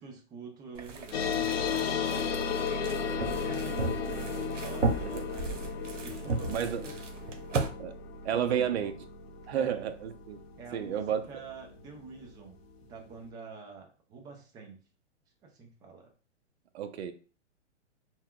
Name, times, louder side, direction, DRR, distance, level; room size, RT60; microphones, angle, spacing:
voice 1, 0.0-2.4 3.1-5.6 5.9-6.9 8.3-8.9 9.5-9.8 10.6-12.6 12.9-14.8 15.4-16.1, right 4 dB, 10° right, 0.4 m, -46 dB
sound 1, 0.7-7.7, right 3 dB, 90° right, 0.9 m, -35 dB
sound 2, 1.1-12.0, left 6 dB, 60° left, 0.6 m, -34 dB
voice 2, 6.5-6.8 7.5-7.9 8.2-8.9 9.5-10.4 10.7-11.2 16.7-17.1, right 9 dB, 60° right, 0.6 m, -31 dB
5.6 x 2.2 x 2.3 m
hypercardioid pair, 135°, 36 cm